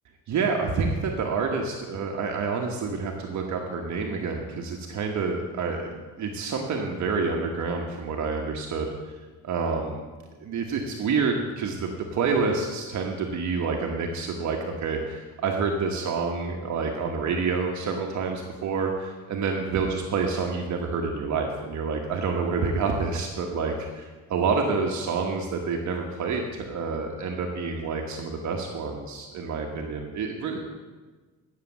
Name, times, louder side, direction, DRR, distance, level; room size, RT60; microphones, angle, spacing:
voice 1, 0.3-10.0 10.4-30.6, right 4 dB, 60° right, 1 dB, 1.2 m, -28 dB
9.9 x 6.6 x 7.3 m, 1.3 s
cardioid pair, 105°, 33 cm